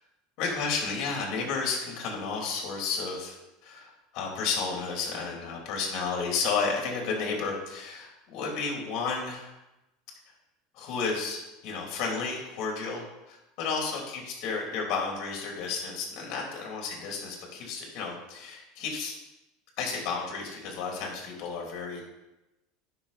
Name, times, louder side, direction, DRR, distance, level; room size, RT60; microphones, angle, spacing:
voice 1, 0.4-3.4 3.6-9.5 10.7-19.1 19.8-22.0, left 5 dB, 55° left, 0 dB, 3.1 m, -32 dB
9.8 x 6.3 x 4.2 m, 0.97 s
supercardioid pair, 130°, 0 cm